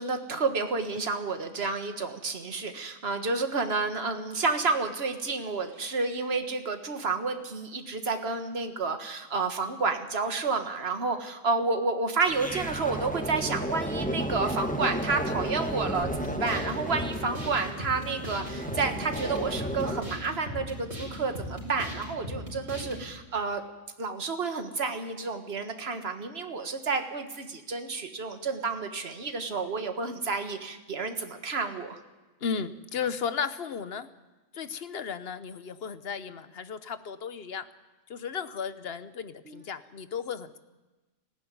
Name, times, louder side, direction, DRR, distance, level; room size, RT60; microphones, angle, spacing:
voice 1, 0.0-23.6 24.0-32.0 39.5-39.6, right 4 dB, 50° right, 6 dB, 1.8 m, -30 dB
sound 1, 12.3-20.0, equal, 5° left, 1.2 m, -33 dB
sound 2, 16.0-23.0, equal, 65° right, 5.5 m, -38 dB
voice 2, 32.4-34.1 34.5-37.7 38.1-40.6, left 6 dB, 50° left, 12 dB, 1.0 m, -34 dB
19.0 x 15.5 x 9.4 m, 1.2 s
omnidirectional pair, 1.4 m